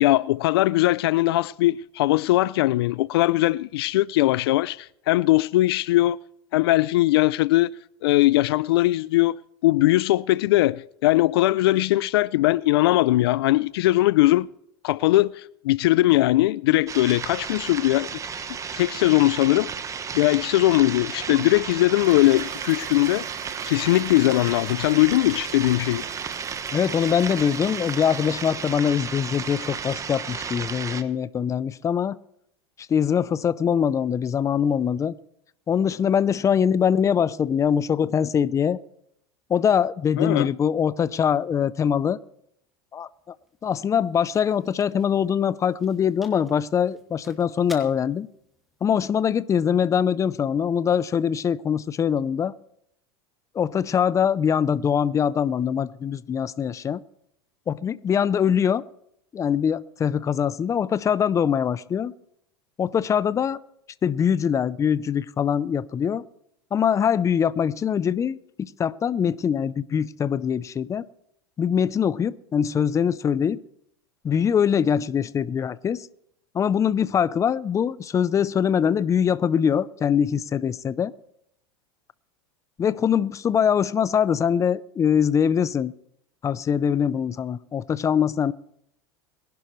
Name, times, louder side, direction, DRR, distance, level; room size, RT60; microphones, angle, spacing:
voice 1, 0.0-6.2 6.5-7.7 8.0-14.5 14.8-18.1 18.8-19.7 20.1-23.3 23.7-26.0 40.2-40.5, left 17 dB, 80° left, 0.4 m, -20 dB
sound 1, 16.9-31.0, right 6 dB, 25° right, 1.1 m, -33 dB
Toilet flush, 21.1-30.3, right 13 dB, 55° right, 1.1 m, -42 dB
voice 2, 26.7-32.2 32.9-35.2 35.7-38.8 39.5-42.2 42.9-43.3 43.6-48.3 48.8-52.5 53.5-57.0 57.7-58.8 59.3-62.1 62.8-63.6 64.0-66.2 66.7-71.0 71.6-73.6 74.2-76.1 76.5-81.1 82.8-85.9 86.4-88.5, left 8 dB, 25° left, 0.6 m, -23 dB
sound 2, 42.7-50.8, left 1 dB, ahead, 2.5 m, -53 dB
22.5 x 11.5 x 3.2 m
supercardioid pair, 110°, 13 cm